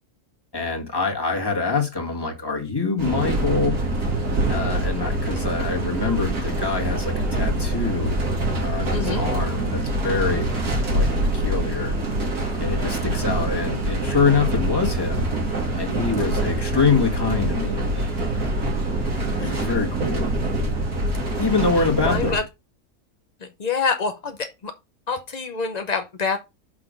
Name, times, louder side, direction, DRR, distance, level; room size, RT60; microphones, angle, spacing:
voice 1, 0.5-3.8 4.5-8.2 8.6-10.5 10.9-12.0 12.5-15.3 15.7-17.8 19.4-20.3 21.4-22.4, left 4 dB, 15° left, 1.5 m, -25 dB
sound 1, 3.0-22.4, right 1 dB, 70° right, 2.6 m, -25 dB
voice 2, 8.9-9.3 19.4-19.5 22.1-22.4 23.6-24.7 25.1-26.4, left 5 dB, 50° left, 0.5 m, -26 dB
5.9 x 5.0 x 5.1 m
omnidirectional pair, 1.6 m